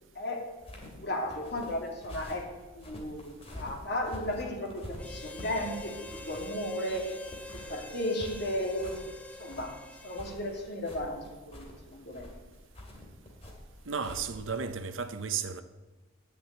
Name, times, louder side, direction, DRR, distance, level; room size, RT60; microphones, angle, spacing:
voice 1, 0.1-0.5 1.0-2.4 2.7-7.2 7.5-9.1 9.4-9.8 10.0-12.3, left 1 dB, 55° left, 2.5 m, -35 dB
sound 1, 0.6-14.6, left 1 dB, 30° left, 2.5 m, -46 dB
Harmonica, 5.0-10.6, left 1 dB, 5° left, 0.6 m, -46 dB
voice 2, 13.9-15.6, right 6 dB, 75° right, 0.8 m, -34 dB
10.0 x 6.9 x 9.1 m
head